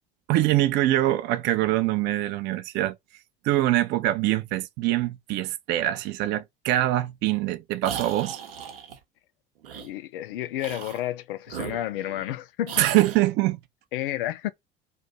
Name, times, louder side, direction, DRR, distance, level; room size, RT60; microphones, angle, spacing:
voice 1, 0.3-3.0 3.4-8.4 12.8-13.6, right 15 dB, 40° right, 0.4 m, -24 dB
sound 1, 7.8-9.0 9.6-9.9 10.6-11.1 11.5-12.3 12.7-13.2, right 8 dB, 70° right, 0.7 m, -38 dB
voice 2, 9.7-12.8 13.9-14.5, left 13 dB, 65° left, 0.4 m, -31 dB
2.5 x 2.2 x 4.0 m
figure-of-eight pair, 65°, 29 cm